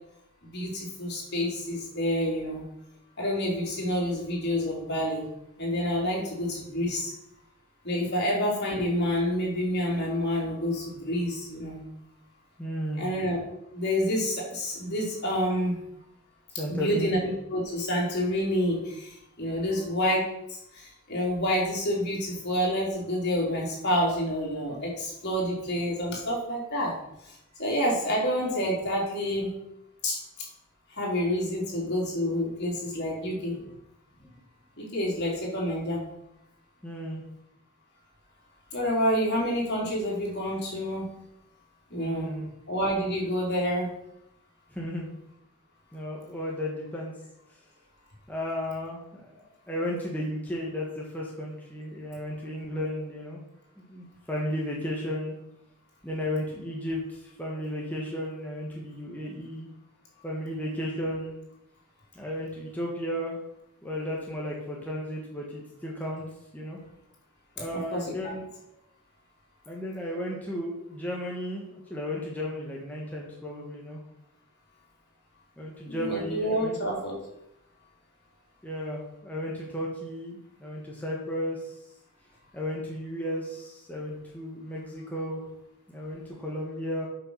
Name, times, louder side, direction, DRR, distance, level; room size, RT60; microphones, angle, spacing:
voice 1, 0.4-2.6 3.2-5.2 5.6-7.1 7.8-11.8 13.0-13.4 13.7-15.8 16.7-26.9 27.6-29.5 30.0-30.2 30.9-33.6 34.8-36.0 38.7-41.1 41.9-42.3 42.7-43.9 67.7-68.3 75.9-77.1, equal, 50° left, -3 dB, 3.8 m, -28 dB
voice 2, 12.6-13.1 16.6-17.1 34.2-34.3 36.8-37.2 42.0-42.5 44.7-45.1 45.9-47.1 47.5-47.6 48.3-53.4 53.8-55.3 56.0-59.7 60.2-61.3 62.1-63.4 63.8-66.3 66.5-66.8 67.6-68.5 69.7-74.0 75.6-76.8 78.6-81.8 82.5-85.4 85.9-87.1, equal, 10° left, -3 dB, 1.5 m, -34 dB
8.3 x 5.9 x 6.8 m, 0.81 s
head